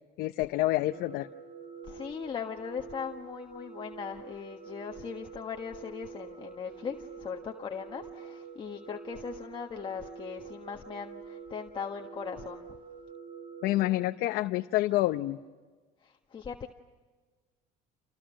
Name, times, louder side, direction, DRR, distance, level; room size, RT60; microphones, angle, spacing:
voice 1, 0.2-1.3 13.6-15.4, left 17 dB, 75° left, 6 dB, 0.9 m, -28 dB
sound 1, 0.9-13.9, right 6 dB, 85° right, 5.9 m, -46 dB
voice 2, 1.8-12.8 16.0-16.7, left 7 dB, 30° left, 2 dB, 1.5 m, -39 dB
29.5 x 29.0 x 6.4 m, 1.4 s
cardioid pair, 125°, 16 cm